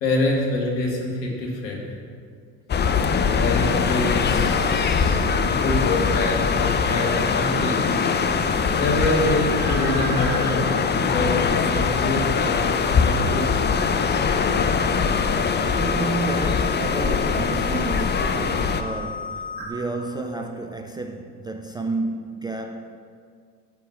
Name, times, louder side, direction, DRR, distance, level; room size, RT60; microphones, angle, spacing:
voice 1, 0.0-1.9 3.4-7.8 8.8-13.7, left 2 dB, 80° left, 2.3 m, -26 dB
sound 1, 2.7-18.8, left 5 dB, 20° left, 0.7 m, -22 dB
sound 2, 4.4-19.7, left 4 dB, 50° right, 2.7 m, -33 dB
voice 2, 15.6-23.0, right 3 dB, 10° right, 0.3 m, -31 dB
12.0 x 4.8 x 7.3 m
hypercardioid pair, 70°, 49 cm